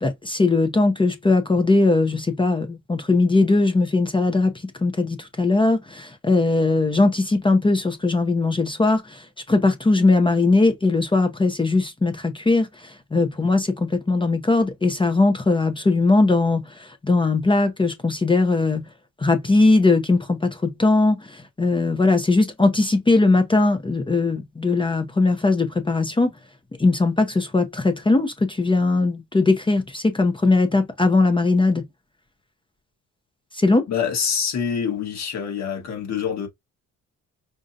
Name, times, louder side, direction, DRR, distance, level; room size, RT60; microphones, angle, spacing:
voice 1, 0.0-4.5 4.8-18.8 19.2-26.3 26.8-31.8 33.5-33.9, left 3 dB, 15° left, 0.7 m, -20 dB
voice 2, 33.9-36.5, left 7 dB, 65° left, 1.7 m, -25 dB
5.1 x 2.3 x 2.7 m
cardioid pair, 90°, 30 cm